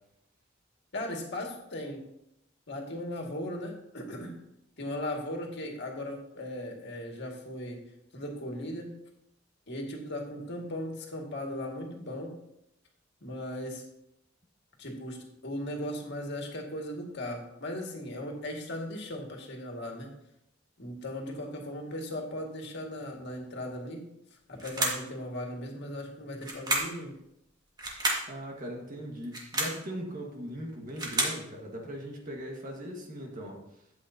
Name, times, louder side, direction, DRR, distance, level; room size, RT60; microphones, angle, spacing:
voice 1, 0.9-2.1 2.7-4.3 4.8-7.8 8.1-8.9 9.7-12.4 13.2-13.8 14.8-20.1 20.8-24.1 24.5-27.1, left 1 dB, 60° left, 1 dB, 2.0 m, -37 dB
sound 1, 24.6-25.1 26.4-27.0 27.8-28.3 29.2-29.8 30.7-31.4, right 1 dB, 20° right, 1.8 m, -30 dB
voice 2, 28.3-33.6, equal, 45° right, 0 dB, 1.6 m, -39 dB
12.5 x 8.2 x 2.8 m, 0.80 s
head